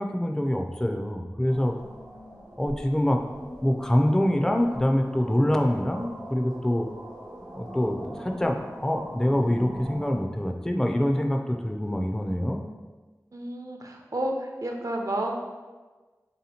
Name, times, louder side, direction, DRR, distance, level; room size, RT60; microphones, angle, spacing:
voice 1, 0.0-1.7 2.6-3.2 3.6-6.9 7.5-8.6 8.8-12.6, equal, 10° left, 3 dB, 0.3 m, -25 dB
sound 1, 1.5-10.2, equal, 90° right, 1.0 m, -42 dB
voice 2, 13.3-15.4, right 1 dB, 60° right, 2 dB, 0.5 m, -31 dB
3.3 x 2.8 x 4.2 m, 1.3 s
wide cardioid pair, 45°, 7 cm